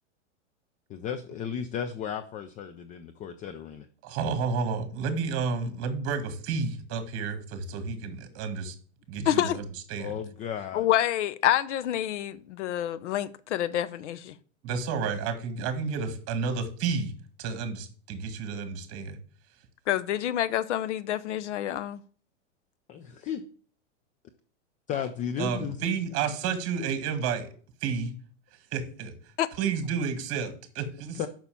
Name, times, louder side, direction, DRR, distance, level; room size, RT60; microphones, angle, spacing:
voice 1, 0.9-3.9 10.0-10.9 22.9-23.4 24.9-25.9 31.1-31.3, left 8 dB, 20° left, 0.4 m, -34 dB
voice 2, 4.0-8.7 9.1-9.6 9.9-10.1 14.6-17.1 17.4-19.2 25.4-27.5 27.8-28.1 28.7-29.2 29.6-31.3, right 5 dB, 40° right, 1.9 m, -31 dB
voice 3, 9.3-9.6 10.7-14.3 19.9-22.0 29.4-29.5, left 12 dB, 70° left, 0.9 m, -27 dB
6.8 x 5.8 x 7.0 m
hypercardioid pair, 120°, 37 cm